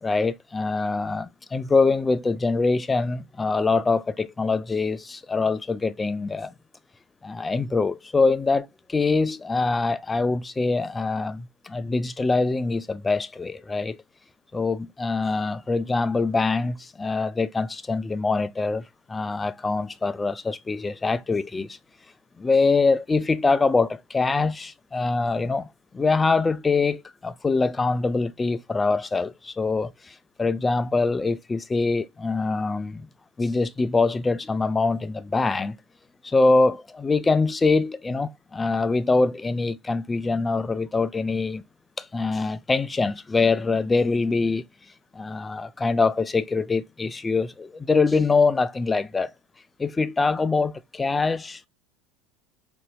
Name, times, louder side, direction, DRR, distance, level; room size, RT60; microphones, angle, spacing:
voice 1, 0.0-6.5 7.2-14.0 14.5-21.8 22.4-25.7 25.9-33.1 33.4-35.8 36.2-41.6 42.0-44.6 45.1-49.3 49.8-51.7, left 3 dB, 20° left, 0.3 m, -24 dB
4.1 x 2.6 x 2.3 m
hypercardioid pair, 85°, 0 cm